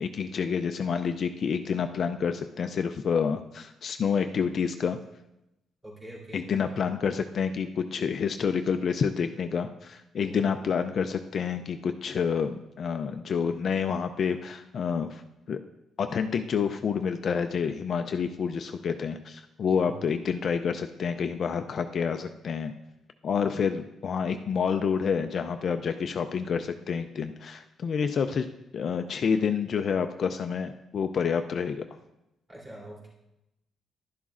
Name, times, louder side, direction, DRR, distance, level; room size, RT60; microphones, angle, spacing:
voice 1, 0.0-5.0 6.3-15.2 15.5-15.6 16.0-22.7 23.2-28.5 28.7-31.8, left 6 dB, 40° left, 7 dB, 0.4 m, -28 dB
voice 2, 5.8-6.7 10.1-10.4 19.7-20.0 32.5-33.1, right 1 dB, 20° right, -5 dB, 3.0 m, -45 dB
11.5 x 11.0 x 2.5 m, 0.90 s
cardioid pair, 170°, 0 cm